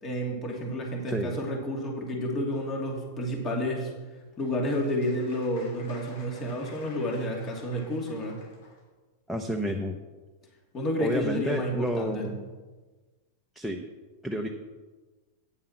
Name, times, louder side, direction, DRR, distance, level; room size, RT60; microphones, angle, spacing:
voice 1, 0.0-3.9 4.4-8.4 10.7-12.3, equal, 30° left, 0 dB, 2.6 m, -30 dB
Applause, 4.0-8.8, left 3 dB, 60° left, 3.1 m, -53 dB
voice 2, 9.3-10.0 11.0-12.5 13.5-13.9 14.2-14.5, equal, ahead, 4 dB, 0.9 m, -30 dB
9.1 x 7.3 x 5.9 m, 1.3 s
hypercardioid pair, 110°, 0 cm